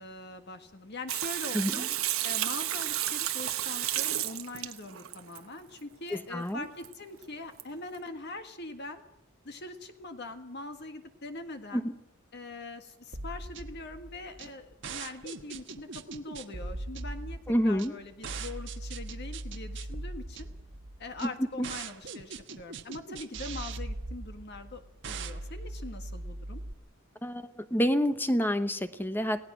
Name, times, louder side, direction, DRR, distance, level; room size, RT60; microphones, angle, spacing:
voice 1, 0.0-1.9 2.2-9.0 9.4-11.9 12.3-20.5 21.0-26.6, left 2 dB, 55° left, 6 dB, 1.7 m, -42 dB
Water tap faucet / Sink (filling or washing), 1.1-5.4 6.8-6.9 7.2-7.3 7.6-7.7, right 13 dB, 85° right, 1.4 m, -32 dB
voice 2, 1.5-1.9 6.1-6.7 11.7-11.9 17.5-17.9 21.2-21.3 21.6-21.7 27.2-29.4, equal, 10° left, 10 dB, 0.9 m, -28 dB
sound 1, 13.1-26.7, right 2 dB, 60° right, 1.4 m, -40 dB
27.0 x 18.0 x 6.3 m, 0.78 s
head